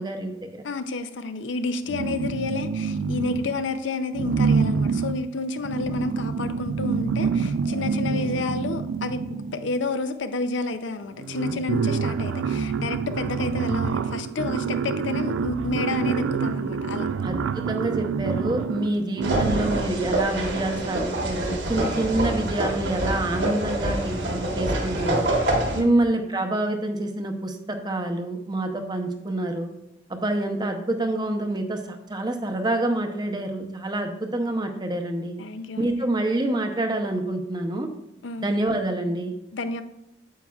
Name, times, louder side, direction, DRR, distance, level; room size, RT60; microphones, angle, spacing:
voice 1, 0.0-0.6 8.1-8.3 17.2-25.2 25.8-29.7 30.1-35.3 35.8-37.9 38.4-39.3, right 1 dB, 20° right, 5 dB, 0.6 m, -27 dB
voice 2, 0.6-9.2 9.5-17.1 25.7-26.0 35.4-36.0 38.2-38.5 39.5-39.8, left 3 dB, 75° left, 10 dB, 0.5 m, -30 dB
sound 1, 1.9-3.7 4.1-9.8 10.7-10.8 11.1-20.0, right 5 dB, 80° right, 0.3 m, -27 dB
sound 2, 19.2-25.8, right 1 dB, 65° right, 1.4 m, -26 dB
9.3 x 7.2 x 2.3 m, 0.83 s
head